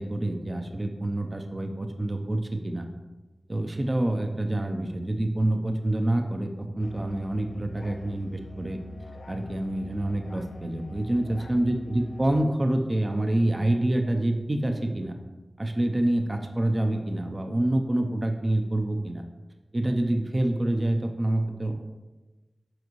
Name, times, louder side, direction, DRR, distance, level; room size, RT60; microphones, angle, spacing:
voice 1, 0.0-2.9 3.5-8.8 9.3-15.1 15.6-19.2 19.7-21.8, right 1 dB, 35° right, 4 dB, 0.7 m, -27 dB
Musical instrument, 6.8-12.5, left 3 dB, 85° left, 0.4 m, -45 dB
7.6 x 5.4 x 3.1 m, 1.2 s
cardioid pair, 45°, 0 cm